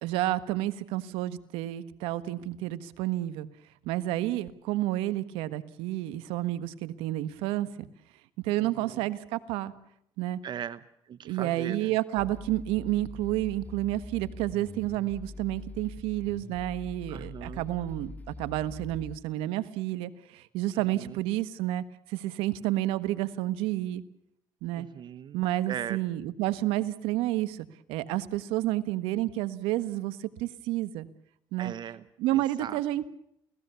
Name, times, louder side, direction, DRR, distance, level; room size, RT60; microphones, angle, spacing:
voice 1, 0.0-3.5 3.8-7.9 8.4-9.7 10.2-10.4 11.2-18.1 18.4-24.0 24.6-24.9 25.3-31.1 31.5-31.7 32.2-33.1, right 15 dB, 85° right, 13 dB, 1.4 m, -30 dB
voice 2, 8.6-9.1 10.4-10.8 11.1-11.9 17.1-17.7 20.9-21.2 24.8-26.0 31.6-32.0 32.3-32.8, right 9 dB, 55° right, 15 dB, 1.0 m, -39 dB
sound 1, 12.2-19.2, left 3 dB, 15° left, 1.8 m, -44 dB
29.5 x 19.0 x 7.0 m, 0.75 s
supercardioid pair, 75°, 9 cm